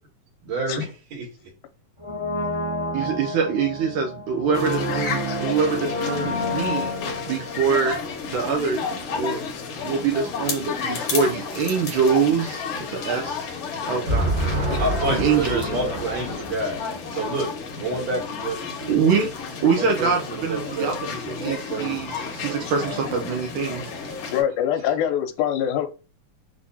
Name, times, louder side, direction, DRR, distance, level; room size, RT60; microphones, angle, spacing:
voice 1, 0.4-1.3 14.1-19.0 19.8-21.0 21.4-23.0 23.6-24.3, right 1 dB, 60° right, 2.6 m, -28 dB
Brass instrument, 2.0-8.9 9.1-9.2, left 1 dB, 30° right, 0.5 m, -30 dB
voice 2, 2.9-6.9 7.3-8.0 8.2-8.9 9.1-9.4 9.8-13.5 13.9-14.3 14.7-16.0 18.9-19.3 19.6-23.9, right 6 dB, 75° right, 2.0 m, -24 dB
sound 1, 4.5-24.4, left 5 dB, 60° left, 2.1 m, -32 dB
voice 3, 24.3-25.9, left 10 dB, 80° left, 2.2 m, -23 dB
6.3 x 2.9 x 2.8 m
omnidirectional pair, 3.7 m